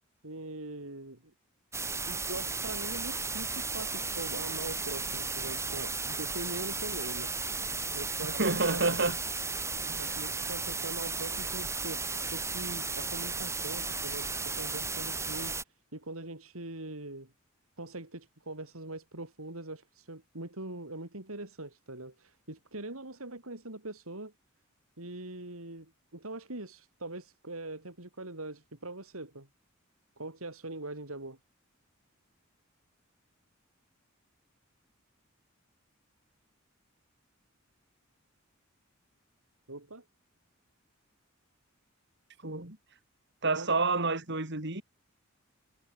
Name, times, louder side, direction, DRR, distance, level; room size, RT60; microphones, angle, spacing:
voice 1, 0.2-1.3 2.1-7.4 7.7-9.1 9.7-15.6 15.9-17.3 17.8-24.3 25.0-29.5 30.2-31.4 39.7-40.0 43.6-43.7, right 2 dB, 90° right, 4.7 m, -42 dB
sound 1, 1.7-15.6, right 4 dB, 15° right, 4.9 m, -35 dB
voice 2, 8.3-9.2 9.9-10.2 42.4-42.8 43.4-44.8, right 3 dB, 55° right, 4.4 m, -29 dB
head